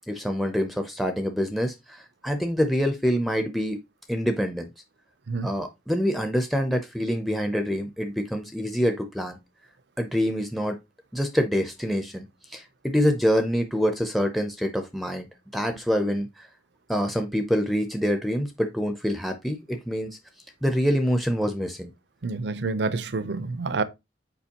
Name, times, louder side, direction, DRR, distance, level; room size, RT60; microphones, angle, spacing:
voice 1, 0.1-3.8 4.1-4.7 5.4-9.4 10.0-10.8 11.1-15.3 15.5-16.5 16.9-20.1 20.6-21.9, equal, ahead, 0.5 m, -26 dB
voice 2, 22.2-23.8, right 3 dB, 65° right, 0.6 m, -28 dB
7.0 x 4.9 x 2.9 m
head